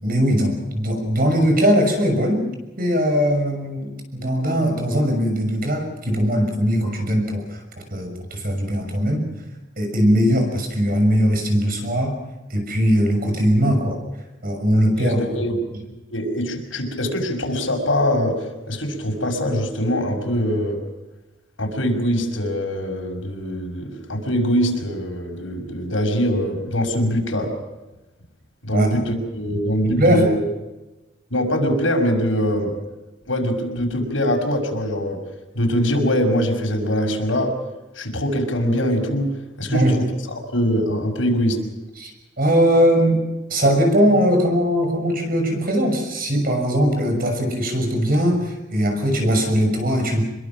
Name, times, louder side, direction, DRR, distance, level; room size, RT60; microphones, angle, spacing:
voice 1, 0.0-2.5 2.8-7.6 7.9-9.3 9.8-12.2 12.5-14.0 14.4-15.2 15.7-15.9 28.7-28.9 29.8-30.3 39.7-40.0 42.0-42.1 42.4-43.2 43.5-50.3, equal, 50° right, 5 dB, 6.4 m, -20 dB
voice 2, 15.0-15.5 16.1-20.8 21.6-27.5 28.6-30.4 31.3-32.7 33.3-35.2 35.5-37.5 38.0-39.3 39.6-40.1 40.3-41.6, equal, 85° left, 2 dB, 6.2 m, -23 dB
27.0 x 22.5 x 6.2 m, 1.1 s
head